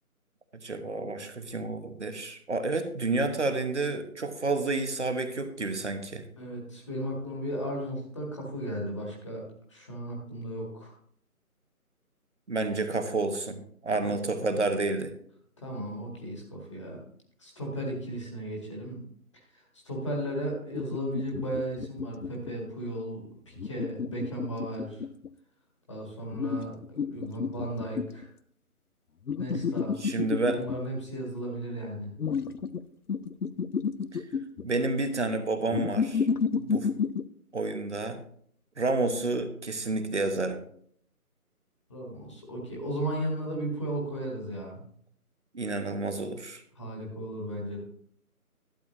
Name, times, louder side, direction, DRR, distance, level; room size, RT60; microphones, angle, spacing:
voice 1, 0.6-6.2 12.5-15.1 30.0-30.6 34.1-34.2 34.6-36.3 36.5-36.9 37.5-38.2 38.8-40.6 45.5-46.6, right 3 dB, 50° right, 9 dB, 1.2 m, -30 dB
voice 2, 6.4-9.4 9.7-10.9 14.0-14.1 15.6-17.0 17.4-19.1 19.3-25.0 25.9-28.3 29.4-30.0 30.4-32.1 41.9-44.8 46.7-47.8, right 1 dB, 20° left, -2 dB, 1.6 m, -35 dB
sound 1, 20.7-22.5 23.6-25.3 26.3-28.2 29.3-30.8 32.2-32.8 33.1-34.6 35.7-37.3, left 6 dB, 85° left, 0.6 m, -30 dB
11.5 x 8.8 x 3.0 m, 0.62 s
figure-of-eight pair, 155°, 44 cm